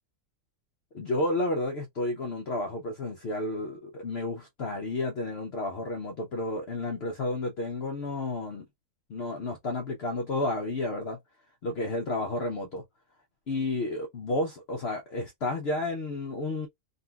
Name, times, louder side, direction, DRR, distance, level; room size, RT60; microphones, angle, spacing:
voice 1, 0.9-8.7 9.1-11.2 11.6-12.8 13.5-16.7, left 2 dB, 55° left, 0.7 m, -31 dB
3.7 x 2.3 x 2.3 m
omnidirectional pair, 1.6 m